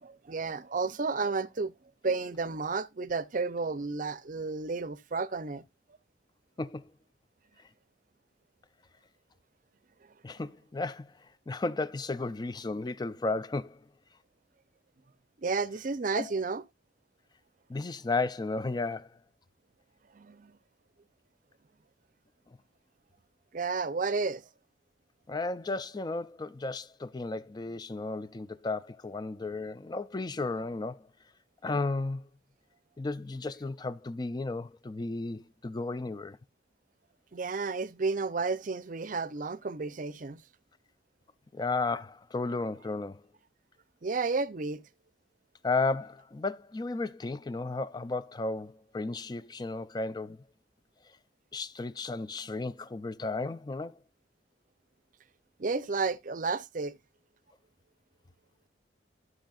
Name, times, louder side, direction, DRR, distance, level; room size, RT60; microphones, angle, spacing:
voice 1, 0.0-1.7 2.0-5.6 15.4-16.6 20.1-20.6 23.5-24.4 37.3-40.4 44.0-44.8 55.6-56.9, right 4 dB, 45° right, 0.6 m, -32 dB
voice 2, 6.6-6.9 10.2-11.1 11.5-13.8 16.1-16.3 17.7-19.1 25.3-31.1 31.6-32.3 33.0-36.4 41.5-43.2 45.6-50.4 51.5-54.0, left 3 dB, 25° left, 0.4 m, -34 dB
13.0 x 6.2 x 2.4 m
head